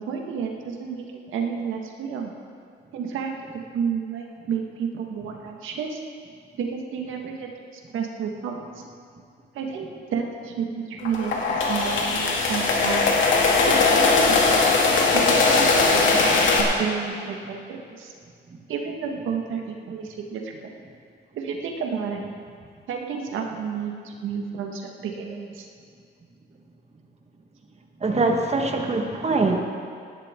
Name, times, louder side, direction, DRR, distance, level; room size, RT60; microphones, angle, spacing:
voice 1, 0.0-2.3 2.9-3.3 3.7-6.0 6.6-8.8 9.5-13.0 13.7-14.4 15.1-18.1 18.7-20.7 21.3-22.2 22.9-25.7, right 6 dB, 80° right, 2 dB, 1.8 m, -31 dB
sound 1, 11.0-16.6, left 3 dB, 75° left, 2.2 m, -20 dB
voice 2, 28.0-29.6, right 3 dB, 35° right, 2 dB, 1.7 m, -23 dB
18.0 x 12.0 x 3.8 m, 2.2 s
cardioid pair, 90°, 20 cm